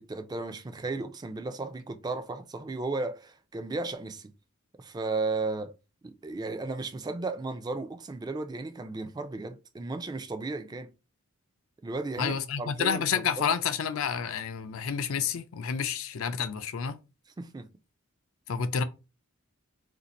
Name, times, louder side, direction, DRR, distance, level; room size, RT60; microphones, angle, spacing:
voice 1, 0.0-4.3 4.8-5.7 6.0-10.9 11.8-13.5 17.4-17.7, right 3 dB, 20° right, 0.3 m, -35 dB
voice 2, 12.2-17.0 18.5-18.8, left 7 dB, 70° left, 0.4 m, -29 dB
2.6 x 2.4 x 4.0 m
head